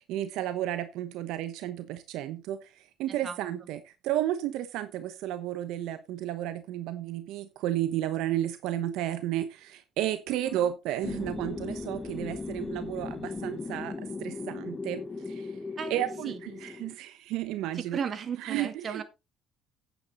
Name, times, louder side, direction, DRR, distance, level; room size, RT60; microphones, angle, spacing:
voice 1, 0.0-15.6 15.9-18.0 18.4-19.0, right 12 dB, 80° right, 1.0 m, -33 dB
sound 1, 11.0-16.9, left 3 dB, 20° left, 1.1 m, -37 dB
voice 2, 15.8-16.4 17.7-19.0, right 7 dB, 45° right, 2.1 m, -36 dB
9.7 x 8.8 x 4.0 m
cardioid pair, 110°, 0 cm